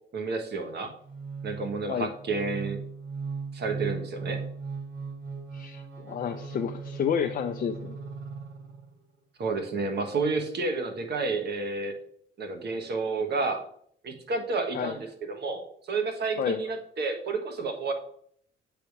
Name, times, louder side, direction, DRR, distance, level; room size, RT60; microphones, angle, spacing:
voice 1, 0.1-0.9 1.4-2.8 3.5-4.4 9.4-12.0 12.4-13.6 14.0-17.9, right 3 dB, 55° right, 4 dB, 1.3 m, -30 dB
sound 1, 1.0-9.0, right 5 dB, 75° right, 2.4 m, -38 dB
voice 2, 5.5-8.0 14.7-14.9 16.4-16.6, left 8 dB, 45° left, 5 dB, 0.5 m, -30 dB
7.9 x 3.5 x 4.7 m, 0.63 s
cardioid pair, 90°, 20 cm